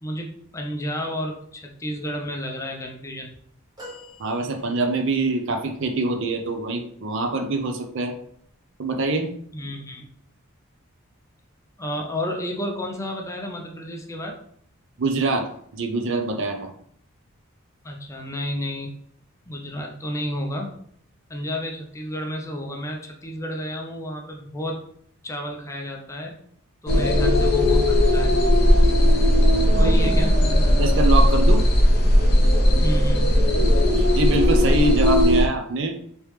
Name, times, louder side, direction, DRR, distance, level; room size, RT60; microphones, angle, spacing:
voice 1, 0.0-3.3 9.5-10.0 11.8-14.4 17.8-18.9 19.5-20.7 21.3-24.8 25.2-26.4 26.8-28.4 29.8-30.3 32.8-33.4, equal, 15° left, 1 dB, 0.4 m, -31 dB
sound 1, 3.8-5.2 5.9-6.0, left 1 dB, 20° right, 1.0 m, -44 dB
voice 2, 4.2-8.1 8.8-9.3 15.0-16.7 29.7-30.1 30.7-31.7 33.5-35.9, right 2 dB, 60° right, 5 dB, 0.5 m, -24 dB
sound 2, 26.9-35.5, left 1 dB, 50° left, 0.7 m, -17 dB
3.3 x 3.0 x 3.2 m, 0.66 s
head